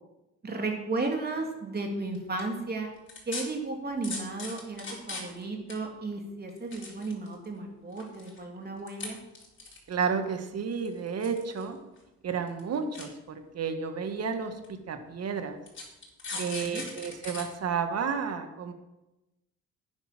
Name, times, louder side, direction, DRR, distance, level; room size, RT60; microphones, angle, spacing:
voice 1, 0.4-2.9 3.3-9.2 16.3-16.9, right 3 dB, 30° right, 2 dB, 3.0 m, -34 dB
sound 1, 2.1-2.4 3.1-3.4 4.0-5.4 5.7-5.8 6.5-7.5 7.9-8.4 8.9-9.1 9.4-10.0 10.9-11.7 12.0-12.1 12.5-12.6 12.9-13.0 13.9-14.0 14.6-14.7 15.7-17.4 17.8-17.9, left 3 dB, 40° left, 4.1 m, -38 dB
voice 2, 9.9-11.8 12.2-15.6 16.4-18.7, right 6 dB, 55° right, 7 dB, 1.7 m, -32 dB
10.5 x 9.6 x 6.1 m, 0.98 s
cardioid pair, 90°, 30 cm